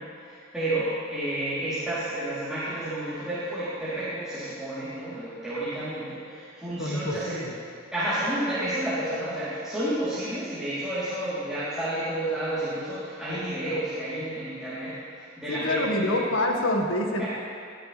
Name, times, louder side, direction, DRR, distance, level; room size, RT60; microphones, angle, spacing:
voice 1, 0.0-7.4 7.9-16.3 17.2-17.3, right 1 dB, 5° right, -14 dB, 3.6 m, -31 dB
voice 2, 6.8-7.5 15.5-17.3, left 1 dB, 75° left, 1 dB, 1.9 m, -26 dB
22.0 x 14.0 x 3.5 m, 2.3 s
head